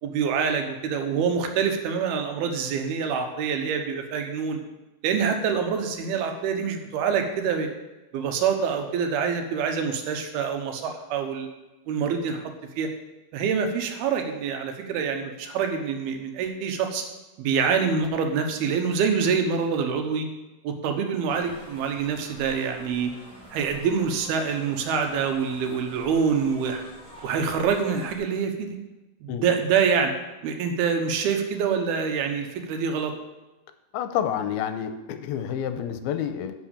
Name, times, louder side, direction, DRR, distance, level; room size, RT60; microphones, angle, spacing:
voice 1, 0.0-4.6 5.0-7.7 8.1-11.5 11.9-12.4 12.8-12.9 13.3-17.0 17.4-20.3 20.6-23.1 23.5-26.8 27.2-28.8 29.2-30.1 30.4-33.1, right 6 dB, 75° right, 4 dB, 2.9 m, -26 dB
sound 1, 21.3-28.2, equal, ahead, 2.9 m, -47 dB
voice 2, 33.9-36.5, left 9 dB, 80° left, 9 dB, 2.4 m, -29 dB
10.0 x 6.3 x 7.1 m, 1.1 s
omnidirectional pair, 4.6 m